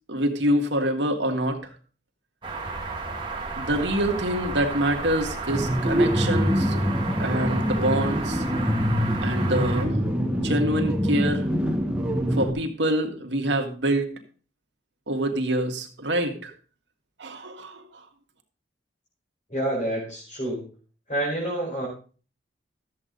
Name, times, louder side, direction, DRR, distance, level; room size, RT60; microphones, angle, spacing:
voice 1, 0.1-1.6 3.6-6.8 7.2-8.4 9.2-11.5 12.3-14.1 15.1-16.5 17.2-18.0, right 1 dB, 80° right, 3 dB, 1.9 m, -26 dB
sound 1, 2.4-9.8, right 3 dB, 25° right, 1.8 m, -33 dB
sound 2, 5.5-12.5, equal, 5° right, 1.4 m, -24 dB
voice 2, 19.5-20.6 21.1-21.9, right 1 dB, 45° left, -7 dB, 4.7 m, -28 dB
13.5 x 8.1 x 3.9 m, 0.39 s
head